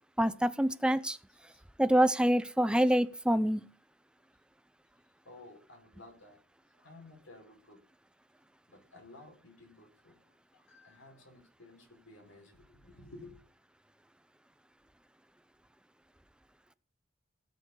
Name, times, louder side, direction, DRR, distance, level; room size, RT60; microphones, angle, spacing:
voice 1, 0.2-1.2 1.8-3.7, right 1 dB, 5° right, 0.6 m, -26 dB
voice 2, 5.3-6.4 6.7-7.8 8.7-10.2 10.5-13.4, left 2 dB, 80° left, 5.2 m, -54 dB
17.5 x 7.0 x 5.5 m
head